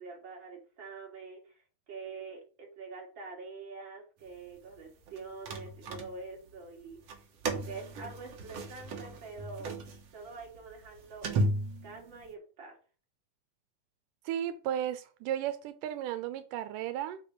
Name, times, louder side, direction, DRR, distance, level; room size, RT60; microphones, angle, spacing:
voice 1, 0.0-9.8 10.1-12.8, right 4 dB, 35° right, -1 dB, 3.6 m, -46 dB
sound 1, 5.1-6.5 7.0-12.3, right 2 dB, 55° right, 2.3 m, -35 dB
voice 2, 14.3-17.2, right 11 dB, 85° right, 11 dB, 2.3 m, -34 dB
8.3 x 4.3 x 6.8 m, 0.37 s
omnidirectional pair, 3.6 m